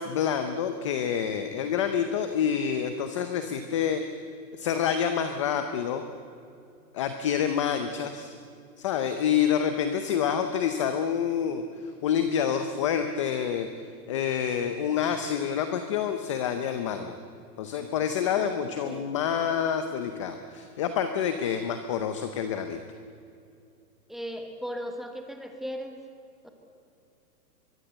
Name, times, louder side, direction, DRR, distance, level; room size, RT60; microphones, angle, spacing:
voice 1, 0.0-4.0 4.6-6.0 6.9-8.3 8.8-13.7 14.1-17.2 17.6-22.8, left 8 dB, 20° left, 8 dB, 0.6 m, -27 dB
voice 2, 18.8-19.2 24.1-25.9 26.4-26.5, equal, ahead, 3 dB, 1.4 m, -37 dB
24.5 x 22.5 x 8.0 m, 2.5 s
hypercardioid pair, 165°, 48 cm